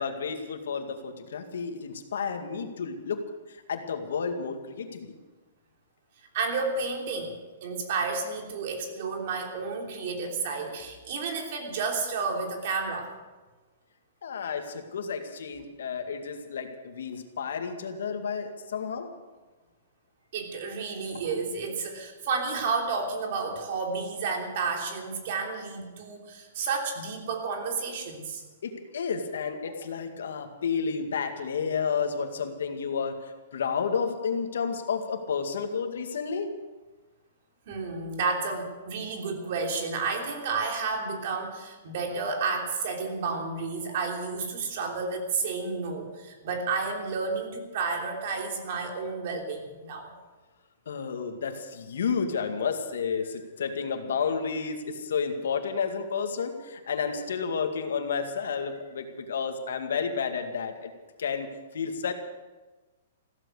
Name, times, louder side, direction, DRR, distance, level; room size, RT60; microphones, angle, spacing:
voice 1, 0.0-5.2 14.2-19.1 28.6-36.5 50.9-60.9 61.2-62.1, left 6 dB, 80° left, 5 dB, 2.1 m, -31 dB
voice 2, 6.3-13.1 20.3-28.4 37.7-50.1, right 4 dB, 40° right, 2 dB, 3.2 m, -31 dB
15.5 x 14.0 x 6.7 m, 1.2 s
hypercardioid pair, 175°, 0 cm